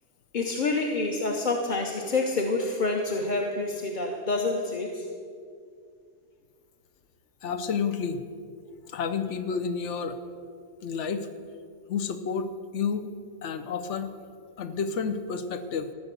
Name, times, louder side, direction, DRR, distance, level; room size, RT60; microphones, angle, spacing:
voice 1, 0.3-5.1, left 3 dB, 45° left, 1 dB, 1.0 m, -27 dB
voice 2, 7.4-8.2 8.9-10.2 10.8-11.3 11.9-13.1 13.4-14.1 14.6-15.9, left 6 dB, 85° left, 10 dB, 1.1 m, -30 dB
15.0 x 6.9 x 8.2 m, 2.3 s
omnidirectional pair, 1.2 m